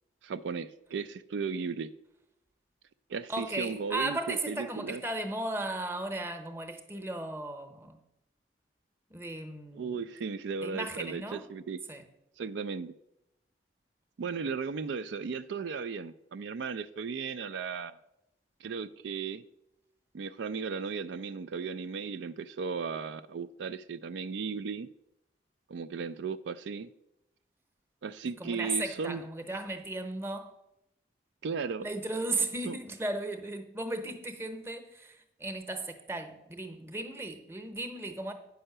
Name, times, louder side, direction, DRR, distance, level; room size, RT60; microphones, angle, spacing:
voice 1, 0.2-1.9 3.1-5.0 9.7-11.8 12.4-12.9 14.2-18.0 18.6-19.4 20.1-24.9 25.7-26.9 28.0-29.2 31.4-31.9 32.7-32.8, right 5 dB, 80° right, 0.4 m, -36 dB
voice 2, 3.3-8.0 9.1-9.9 10.6-11.4 11.9-12.0 28.4-30.5 31.8-38.3, right 2 dB, 15° right, 0.8 m, -36 dB
8.9 x 5.5 x 6.6 m
head